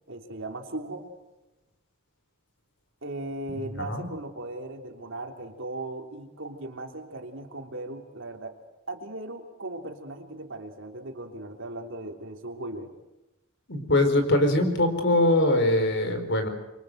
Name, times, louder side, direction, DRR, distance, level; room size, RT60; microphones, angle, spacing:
voice 1, 0.1-1.0 3.0-8.6 8.9-13.0, right 2 dB, 60° right, 3 dB, 3.4 m, -37 dB
voice 2, 13.7-16.5, left 1 dB, 55° left, 7 dB, 4.7 m, -22 dB
25.5 x 24.5 x 8.0 m, 0.99 s
head